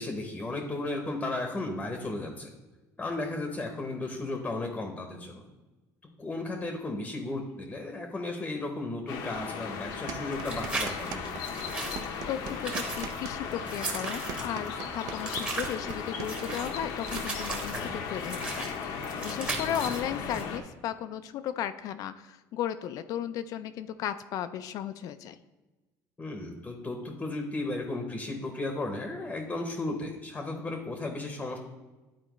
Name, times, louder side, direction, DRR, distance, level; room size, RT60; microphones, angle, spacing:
voice 1, 0.0-2.5 3.0-5.4 6.2-11.4 17.7-18.0 26.2-31.6, left 2 dB, 15° left, 4 dB, 0.8 m, -35 dB
sound 1, 9.1-20.6, left 6 dB, 75° left, 0.8 m, -37 dB
sound 2, 10.1-11.4 11.7-17.3, right 8 dB, 60° right, 0.5 m, -41 dB
sound 3, 10.3-20.4, right 2 dB, 15° right, 1.1 m, -38 dB
voice 2, 12.3-25.4, left 10 dB, 55° left, 11 dB, 0.4 m, -35 dB
11.5 x 4.3 x 3.0 m, 1.2 s
cardioid pair, 145°, 7 cm